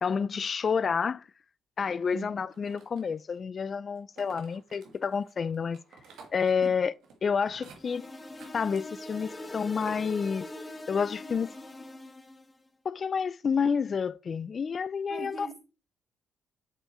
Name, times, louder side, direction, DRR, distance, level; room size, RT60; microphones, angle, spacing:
voice 1, 0.0-1.2 1.8-5.8 6.3-6.9 7.2-8.1 8.5-10.5 10.9-11.5 12.8-15.5, left 6 dB, 45° left, 0.3 m, -29 dB
sound 1, 2.5-3.4 4.0-11.1, right 5 dB, 80° right, 1.5 m, -54 dB
sound 2, 7.8-12.6, left 2 dB, 20° left, 0.9 m, -42 dB
voice 2, 15.1-15.6, right 4 dB, 40° right, 1.2 m, -41 dB
6.8 x 4.5 x 4.3 m
cardioid pair, 90°, 0 cm